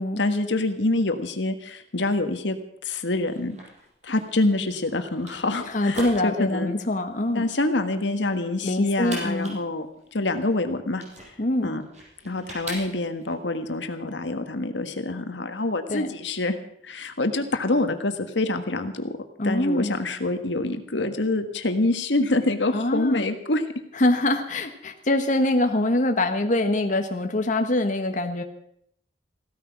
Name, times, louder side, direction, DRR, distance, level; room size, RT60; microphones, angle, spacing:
voice 1, 0.2-2.6 2.8-3.6 4.0-6.7 7.3-9.9 10.1-11.0 11.6-11.8 12.2-16.6 16.8-19.1 19.4-23.6, left 2 dB, 85° left, 7 dB, 1.5 m, -26 dB
sound 1, 3.1-13.3, right 1 dB, 40° right, 5.6 m, -42 dB
voice 2, 5.7-7.5 8.6-9.6 11.4-11.7 15.9-16.1 19.4-19.9 22.7-23.2 23.9-28.4, left 1 dB, 45° left, 5 dB, 1.1 m, -24 dB
16.0 x 13.5 x 5.9 m, 0.69 s
head